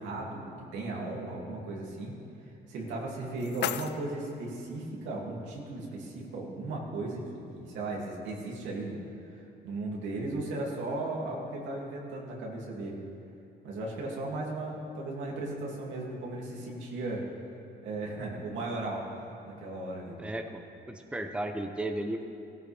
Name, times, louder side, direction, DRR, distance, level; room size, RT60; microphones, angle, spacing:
voice 1, 0.0-2.2 2.7-9.0 9.3-13.0 13.6-17.3 17.8-20.2, right 2 dB, 90° right, -2 dB, 2.6 m, -36 dB
sound 1, 2.9-4.9, left 10 dB, 70° left, 0.5 m, -38 dB
voice 2, 20.2-22.2, right 1 dB, 5° right, 4 dB, 0.8 m, -35 dB
17.5 x 14.5 x 3.5 m, 2.7 s
cardioid pair, 125°, 18 cm